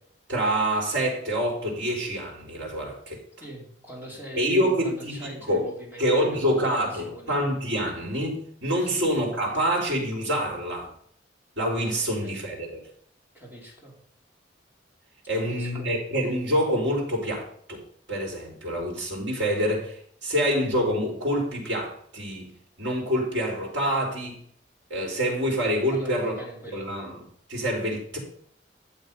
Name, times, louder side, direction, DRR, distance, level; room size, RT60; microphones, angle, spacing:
voice 1, 0.3-3.2 4.4-5.7 6.0-10.9 11.6-12.8 15.3-17.8 18.1-24.4 24.9-26.3 26.7-28.2, equal, 80° right, -2 dB, 4.3 m, -26 dB
voice 2, 3.4-7.4 8.9-9.1 12.2-12.3 13.3-14.0 15.3-15.9 25.9-26.9, equal, 10° right, -2 dB, 3.7 m, -42 dB
12.0 x 7.4 x 5.5 m, 0.62 s
head